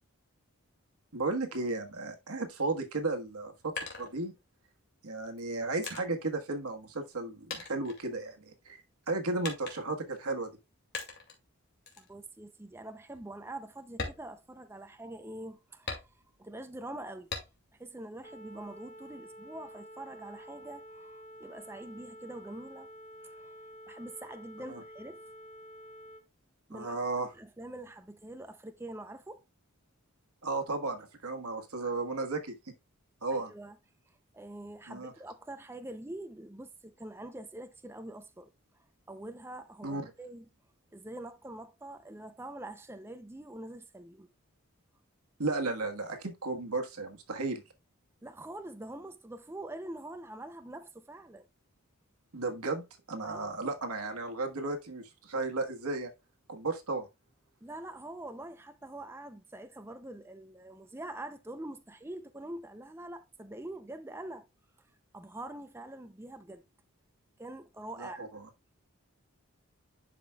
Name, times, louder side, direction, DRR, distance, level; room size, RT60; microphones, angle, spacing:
voice 1, 1.1-3.7 4.0-4.3 5.0-8.8 9.1-10.5 24.7-24.8 26.7-27.3 30.4-32.5 33.2-33.5 34.9-35.1 39.8-40.1 45.4-47.6 52.3-56.1 56.5-57.1 68.0-68.3, right 3 dB, 90° right, 1.4 m, -34 dB
sound 1, 3.3-4.7 5.4-7.2 7.5-8.7 9.4-10.1 10.9-11.4 11.9-12.1 12.6-12.7 13.1-13.3 13.9-15.1 15.9-16.5 17.3-17.8 18.2-19.1, left 4 dB, 50° left, 2.1 m, -42 dB
voice 2, 12.0-16.1 16.4-17.3 17.8-22.9 23.2-23.5 23.9-25.2 26.7-27.0 27.3-29.4 33.3-33.8 34.3-38.5 39.1-40.5 40.9-44.3 48.2-51.5 53.2-53.6 57.6-64.5 65.1-66.6 67.4-68.2, right 1 dB, 10° right, 0.4 m, -44 dB
sound 2, 18.2-26.2, equal, 30° left, 1.7 m, -50 dB
11.0 x 5.0 x 2.3 m
head